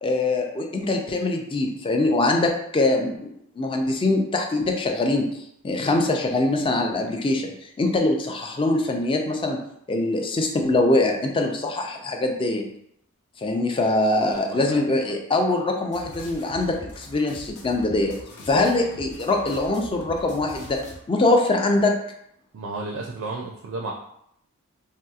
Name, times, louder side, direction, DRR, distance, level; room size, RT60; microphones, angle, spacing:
voice 1, 0.0-5.3 5.6-7.5 7.8-9.6 9.9-12.6 13.4-18.2 18.5-20.8 21.1-21.9, left 2 dB, 25° left, 3 dB, 0.4 m, -23 dB
voice 2, 14.3-14.7 22.5-23.9, right 3 dB, 70° right, 0 dB, 0.4 m, -33 dB
sound 1, 15.9-21.0, left 1 dB, 80° left, 0.7 m, -42 dB
3.1 x 2.8 x 2.3 m, 0.74 s
head